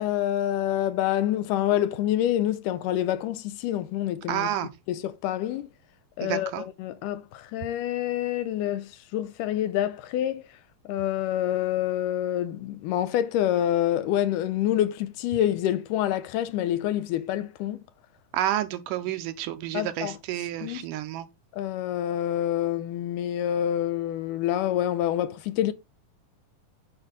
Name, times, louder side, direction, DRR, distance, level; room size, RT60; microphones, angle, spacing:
voice 1, 0.0-4.5 4.9-5.7 6.2-10.4 10.9-17.8 19.7-20.1 20.6-20.9 21.5-25.7, left 12 dB, 80° left, 2.2 m, -27 dB
voice 2, 4.3-4.7 6.2-6.6 18.3-21.3, right 12 dB, 90° right, 2.4 m, -30 dB
8.7 x 4.4 x 4.0 m
omnidirectional pair, 3.7 m